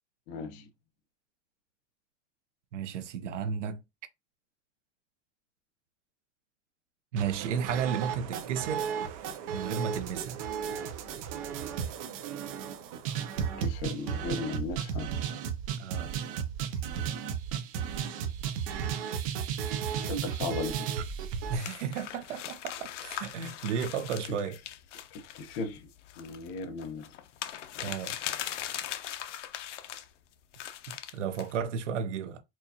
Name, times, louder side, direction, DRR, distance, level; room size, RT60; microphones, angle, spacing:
voice 1, 0.3-0.7 13.6-15.1 20.0-20.8 25.1-25.9 26.2-27.0, left 3 dB, 35° left, 0.8 m, -36 dB
voice 2, 2.7-3.8 7.1-8.9 9.5-10.4 15.8-16.1 21.5-24.6 27.8-28.2 31.1-32.4, right 7 dB, 80° right, 0.8 m, -33 dB
sound 1, 7.2-21.6, right 8 dB, 30° right, 0.4 m, -34 dB
sound 2, 21.6-30.1 30.5-31.6, left 11 dB, 85° left, 0.7 m, -40 dB
4.4 x 2.4 x 2.8 m
supercardioid pair, 160°, 36 cm